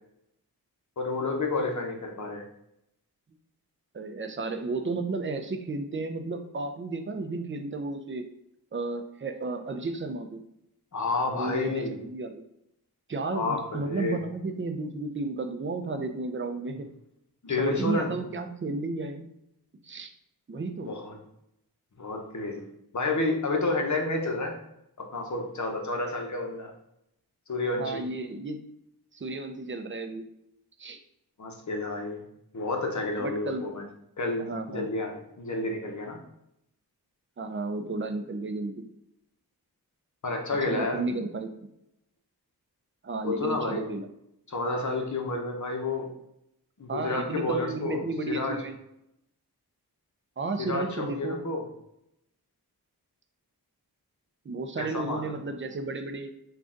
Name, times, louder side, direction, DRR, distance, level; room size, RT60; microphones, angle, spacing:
voice 1, 1.0-2.4 10.9-12.0 13.3-14.2 17.4-18.2 20.9-21.1 22.0-22.7 22.9-24.6 25.0-26.7 27.5-28.0 31.4-32.2 32.5-33.8 34.2-36.2 40.2-41.0 43.2-43.8 44.5-46.1 46.8-48.6 50.6-51.6 54.8-55.3, left 2 dB, 45° left, 2 dB, 0.9 m, -30 dB
voice 2, 3.9-8.3 8.7-10.4 11.4-12.4 13.1-16.9 17.6-19.3 19.8-20.1 20.5-20.9 27.8-28.6 29.1-30.2 30.8-31.0 33.2-33.6 34.4-34.9 37.4-38.8 40.6-41.5 43.0-44.1 46.9-48.8 50.4-51.4 54.4-56.3, right 3 dB, 30° right, 6 dB, 0.5 m, -33 dB
3.8 x 2.4 x 3.7 m, 0.81 s
cardioid pair, 55°, 39 cm